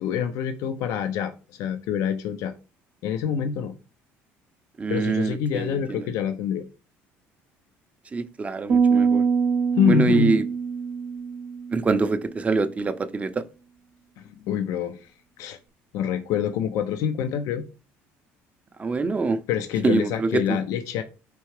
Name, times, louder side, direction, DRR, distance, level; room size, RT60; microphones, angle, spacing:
voice 1, 0.0-1.3 1.6-2.5 3.0-3.7 4.9-6.6 9.8-10.3 14.2-15.1 15.4-15.6 15.9-17.6 19.5-21.0, left 8 dB, 70° left, 0.4 m, -26 dB
voice 2, 4.8-6.1 8.1-9.2 9.9-10.4 11.7-13.4 18.8-19.4 19.8-20.6, right 4 dB, 25° right, 0.5 m, -24 dB
sound 1, 8.7-12.1, right 6 dB, 60° right, 0.7 m, -24 dB
4.5 x 2.8 x 3.1 m
supercardioid pair, 80°, 6 cm